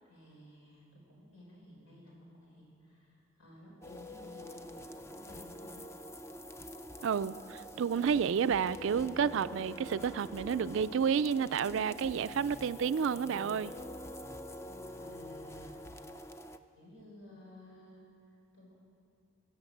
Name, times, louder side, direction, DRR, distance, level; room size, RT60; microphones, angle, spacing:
voice 1, 0.0-5.9 14.9-16.1 16.7-18.7, left 1 dB, 90° left, -2 dB, 5.0 m, -55 dB
sound 1, 3.8-16.6, left 1 dB, 15° left, 0.4 m, -46 dB
voice 2, 7.0-13.7, right 7 dB, 65° right, 15 dB, 0.3 m, -30 dB
sound 2, 8.6-15.5, left 1 dB, 65° left, 1.9 m, -52 dB
20.0 x 8.0 x 7.8 m, 2.6 s
head